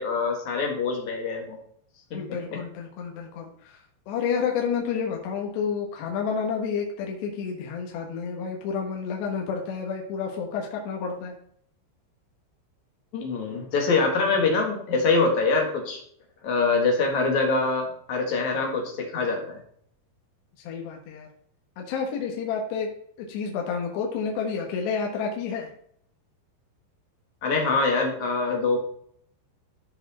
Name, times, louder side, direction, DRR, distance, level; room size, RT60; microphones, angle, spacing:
voice 1, 0.0-1.6 2.1-2.2 2.5-2.6 13.1-16.0 16.4-19.6 27.4-28.8, left 3 dB, 50° left, 2 dB, 2.5 m, -24 dB
voice 2, 2.1-3.8 4.1-11.4 20.6-21.3 21.8-22.9 23.2-25.7, left 6 dB, 70° left, 0 dB, 3.3 m, -30 dB
13.5 x 4.8 x 4.2 m, 0.64 s
omnidirectional pair, 5.4 m